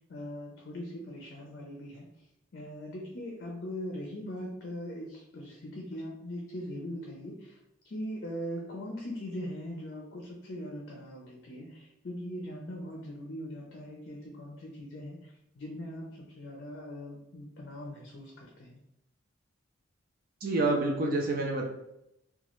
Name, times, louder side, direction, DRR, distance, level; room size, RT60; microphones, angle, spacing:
voice 1, 0.0-2.1 2.5-7.6 7.8-18.8, equal, 50° left, -1 dB, 0.5 m, -40 dB
voice 2, 20.4-21.7, right 2 dB, 45° right, 0 dB, 0.4 m, -28 dB
2.9 x 2.3 x 2.9 m, 0.83 s
head